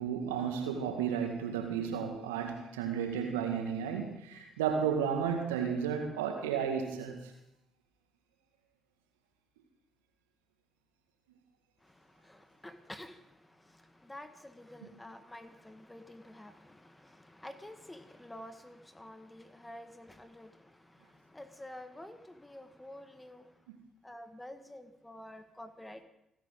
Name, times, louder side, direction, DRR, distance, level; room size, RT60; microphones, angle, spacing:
voice 1, 0.0-7.3 23.7-23.8, right 7 dB, 80° right, 1.9 m, -33 dB
voice 2, 11.8-23.6 24.0-26.0, left 1 dB, 10° left, 1.7 m, -50 dB
30.0 x 10.5 x 3.9 m
hypercardioid pair, 45°, 0 cm